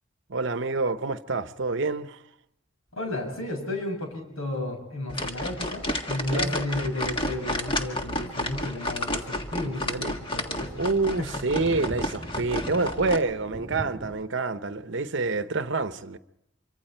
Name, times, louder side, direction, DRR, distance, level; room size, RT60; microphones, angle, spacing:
voice 1, 0.3-2.2 6.3-6.5 9.6-10.1 10.7-16.2, right 3 dB, 60° right, 0.9 m, -27 dB
voice 2, 2.9-10.7 11.2-11.3, left 2 dB, 80° left, 6.5 m, -32 dB
sound 1, 5.1-13.2, left 1 dB, 25° left, 1.5 m, -31 dB
sound 2, 7.4-14.2, equal, 20° right, 2.9 m, -43 dB
25.5 x 24.5 x 4.5 m
head